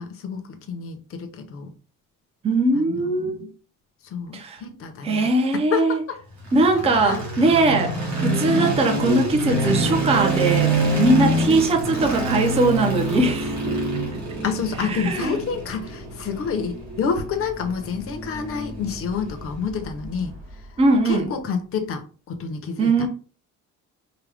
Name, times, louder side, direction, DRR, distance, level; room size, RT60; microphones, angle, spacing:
voice 1, 0.0-1.7 2.7-3.5 4.1-5.3 5.7-6.2 7.0-7.2 14.4-20.3 21.0-22.0 22.3-22.9, left 6 dB, 45° left, 0.8 m, -28 dB
voice 2, 2.4-3.5 4.3-4.6 5.0-6.0 6.5-13.7 14.8-15.4 20.8-21.3 22.8-23.1, right 2 dB, 20° right, 0.5 m, -20 dB
sound 1, 6.4-20.5, right 1 dB, 65° right, 1.9 m, -26 dB
4.9 x 2.2 x 3.4 m
cardioid pair, 175°, 31 cm